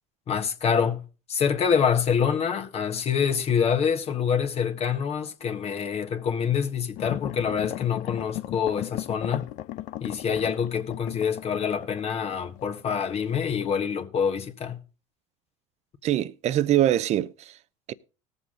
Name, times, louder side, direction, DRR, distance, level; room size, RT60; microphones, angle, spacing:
voice 1, 0.3-1.0 1.3-9.4 10.0-14.8, left 7 dB, 45° left, 1.5 m, -26 dB
sound 1, 7.0-13.3 13.6-13.7, left 14 dB, 60° left, 0.7 m, -37 dB
voice 2, 16.0-17.5 17.9-18.0, right 12 dB, 45° right, 0.7 m, -23 dB
18.5 x 7.1 x 3.7 m
hypercardioid pair, 80°, 15 cm